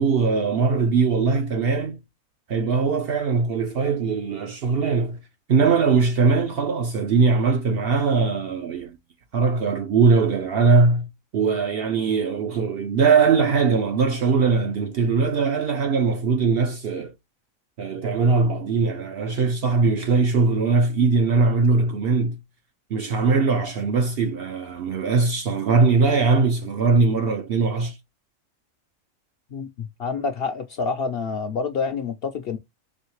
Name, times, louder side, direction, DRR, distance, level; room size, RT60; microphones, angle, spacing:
voice 1, 0.0-2.0 2.5-5.2 5.5-9.0 9.3-17.1 17.8-22.4 22.9-28.0, right 4 dB, 60° right, 0.6 m, -21 dB
voice 2, 29.5-32.6, left 5 dB, 60° left, 0.6 m, -28 dB
4.2 x 3.1 x 3.0 m
omnidirectional pair, 1.4 m